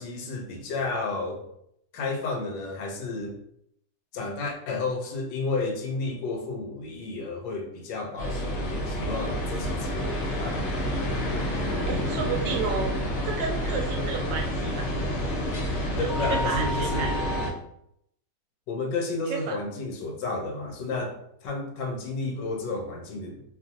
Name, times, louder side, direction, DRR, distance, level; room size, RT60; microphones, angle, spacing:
voice 1, 0.0-1.4 1.9-3.3 4.1-10.7 16.0-17.2 18.7-23.4, left 3 dB, 85° left, 3 dB, 1.3 m, -32 dB
sound 1, 8.2-17.5, equal, 60° left, 0.7 m, -28 dB
voice 2, 11.9-13.0 13.2-14.9 16.0-17.1 19.3-19.6, right 5 dB, 80° right, 1 dB, 1.2 m, -31 dB
3.0 x 2.4 x 2.5 m, 0.73 s
omnidirectional pair, 1.9 m